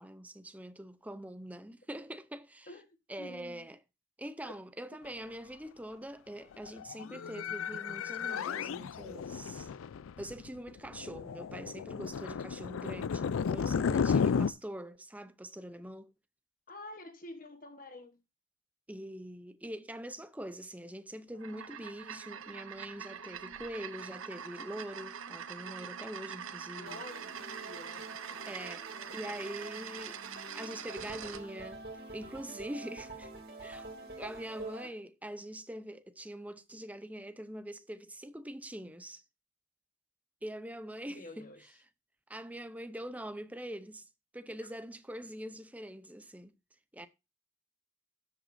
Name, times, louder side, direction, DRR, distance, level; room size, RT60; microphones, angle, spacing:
voice 1, 0.0-2.7 3.1-3.8 4.2-9.7 10.2-16.1 18.9-27.0 28.4-28.9 29.1-30.2 30.5-31.8 32.1-33.3 33.6-33.9 34.2-39.2 40.4-41.7 42.3-44.0 44.3-46.5 46.9-47.1, right 1 dB, 5° right, 0.6 m, -44 dB
voice 2, 2.7-3.7 16.7-18.2 26.8-28.4 29.0-29.4 32.5-32.6 33.5-33.7 34.8-34.9 41.1-41.7, left 2 dB, 40° left, 1.2 m, -49 dB
sound 1, 6.7-14.5, left 6 dB, 80° left, 0.4 m, -33 dB
sound 2, 21.3-31.4, right 7 dB, 85° right, 0.9 m, -44 dB
sound 3, 26.9-34.9, right 2 dB, 50° right, 2.7 m, -47 dB
12.5 x 8.1 x 2.6 m
head